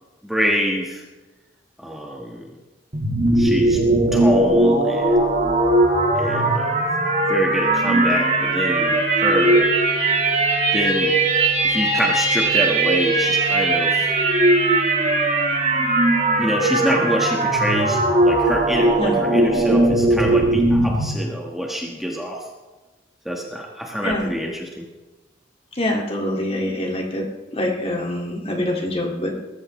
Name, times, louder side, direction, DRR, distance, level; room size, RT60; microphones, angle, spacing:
voice 1, 0.2-1.0 1.8-2.5 3.3-3.8 4.1-5.3 6.1-6.8 7.3-9.7 10.7-11.1 11.6-14.0 16.4-22.5 23.2-24.8, equal, ahead, -1 dB, 1.4 m, -25 dB
sound 1, 2.9-21.1, right 2 dB, 40° right, 2.5 m, -19 dB
voice 2, 25.8-27.3 27.5-29.4, left 1 dB, 30° left, 0 dB, 2.2 m, -25 dB
21.5 x 13.5 x 3.2 m, 1.2 s
head